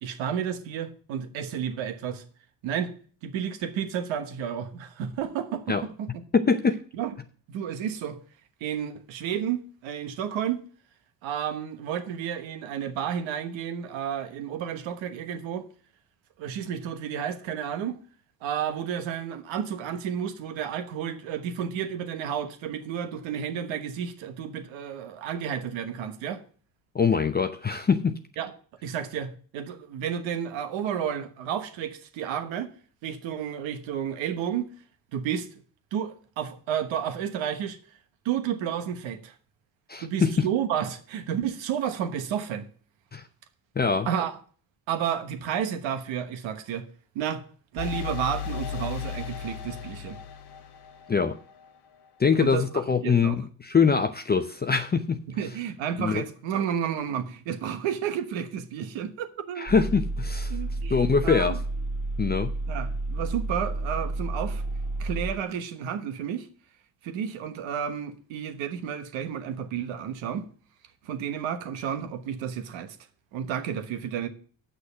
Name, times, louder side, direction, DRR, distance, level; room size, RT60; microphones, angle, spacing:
voice 1, 0.0-2.2 2.6-2.9 3.2-6.2 6.9-7.1 7.5-8.2 8.6-10.6 11.2-15.7 16.4-18.0 18.4-26.4 28.4-28.5 28.8-32.7 33.0-34.7 35.1-35.5 35.9-37.8 38.2-39.3 40.0-42.7 44.1-44.4 44.9-46.9 47.1-47.4 47.7-50.2 52.4-53.4 55.3-59.7 60.5-61.6 62.7-64.6 65.0-66.5 67.0-70.5 71.0-73.0 73.3-74.3, right 8 dB, 80° right, 1.3 m, -31 dB
voice 2, 6.3-6.8 26.9-28.2 39.9-40.3 43.1-43.2 43.8-44.1 51.1-51.4 52.2-55.2 56.0-56.2 59.6-60.6 60.9-61.6 62.2-62.5, left 5 dB, 20° left, 0.6 m, -23 dB
sound 1, 47.8-51.5, left 8 dB, 60° left, 1.1 m, -35 dB
sound 2, 59.7-65.3, right 2 dB, 40° right, 1.5 m, -31 dB
7.9 x 6.3 x 6.8 m
cardioid pair, 85°, 45 cm